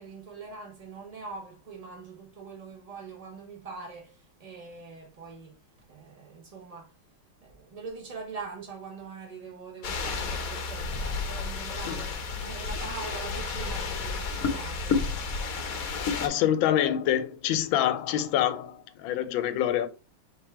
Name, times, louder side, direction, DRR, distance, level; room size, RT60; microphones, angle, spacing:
voice 1, 0.0-5.6 5.9-6.9 7.4-15.1, right 4 dB, 80° right, 0.3 m, -43 dB
sound 1, 9.8-16.3, left 4 dB, 60° left, 1.0 m, -31 dB
voice 2, 11.7-12.1 16.2-19.9, left 11 dB, 80° left, 1.3 m, -26 dB
3.5 x 3.4 x 4.3 m
omnidirectional pair, 2.2 m